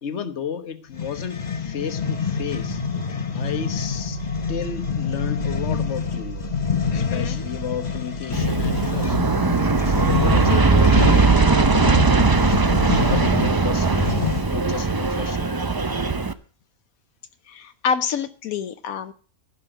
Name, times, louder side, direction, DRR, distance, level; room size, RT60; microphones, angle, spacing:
voice 1, 0.0-2.8 3.3-4.2 4.5-6.6 6.9-9.2 9.9-12.1 12.4-15.7, left 7 dB, 55° left, 1.4 m, -33 dB
sound 1, 0.9-14.6, left 6 dB, 35° left, 1.0 m, -27 dB
sound 2, 2.0-13.6, right 8 dB, 80° right, 1.4 m, -38 dB
voice 2, 6.9-7.4 12.5-12.9 17.5-19.1, left 6 dB, 80° left, 1.2 m, -28 dB
Aircraft, 8.3-16.3, right 4 dB, 25° right, 0.4 m, -19 dB
16.0 x 5.6 x 8.9 m
omnidirectional pair, 1.5 m